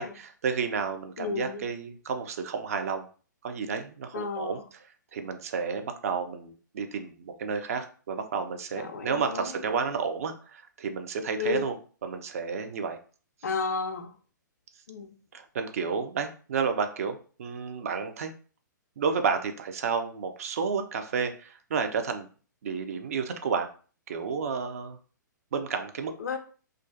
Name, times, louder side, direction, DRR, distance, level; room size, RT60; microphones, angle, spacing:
voice 1, 0.0-3.1 3.4-4.6 5.1-11.8 12.0-13.0 15.3-18.3 19.0-22.3 22.6-23.7 24.1-25.0 25.5-26.4, right 5 dB, 45° right, 0.4 m, -31 dB
voice 2, 1.2-1.6 4.1-4.6 8.8-9.6 11.4-11.7 13.4-14.1 14.9-15.1 26.2-26.4, left 5 dB, 55° left, 0.4 m, -32 dB
2.4 x 2.2 x 2.4 m
figure-of-eight pair, 120°, 11 cm